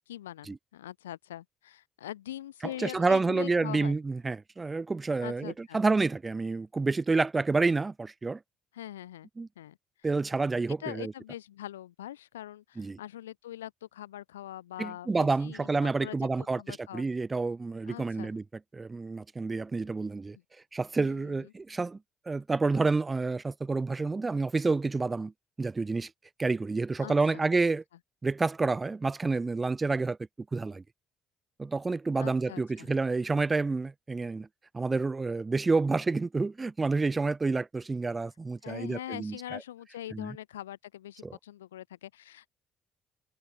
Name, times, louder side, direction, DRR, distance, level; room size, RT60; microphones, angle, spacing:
voice 1, 0.0-4.0 5.2-5.8 8.7-9.3 9.6-9.8 10.8-17.1 17.9-18.3 21.0-21.5 27.0-27.4 32.2-32.9 38.6-42.5, left 12 dB, 90° left, 0.5 m, -43 dB
voice 2, 2.6-8.4 9.4-9.5 10.0-11.1 12.8-13.0 14.8-18.4 18.7-20.4 20.7-22.0 22.3-25.3 25.6-26.1 26.4-27.8 28.2-30.2 30.5-30.8 31.6-34.5 34.7-39.6 40.1-40.4 41.2-41.4, right 3 dB, 25° right, 0.9 m, -29 dB
hypercardioid pair, 50°, 0 cm